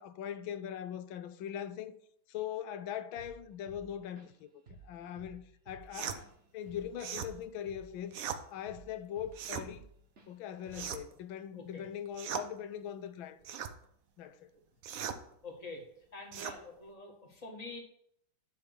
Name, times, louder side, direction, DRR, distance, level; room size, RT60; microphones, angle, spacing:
voice 1, 0.0-2.0 2.3-8.2 8.5-9.9 10.3-13.6 14.2-14.5, left 9 dB, 80° left, 1.4 m, -41 dB
Drum kit / Drum, 3.2-3.4 3.7-4.4 4.7-4.9 5.2-8.3 8.7-9.9 10.2-10.3 10.7-11.0, right 4 dB, 40° right, 1.5 m, -54 dB
sound 1, 5.9-6.2 7.0-7.3 8.1-8.4 9.3-9.7 10.7-11.2 12.1-12.5 13.4-13.7 14.8-15.2 16.3-16.6, right 8 dB, 65° right, 0.8 m, -39 dB
voice 2, 11.5-11.8 15.4-15.8 16.1-17.8, left 3 dB, 20° left, 1.7 m, -46 dB
10.5 x 3.6 x 6.6 m
omnidirectional pair, 2.2 m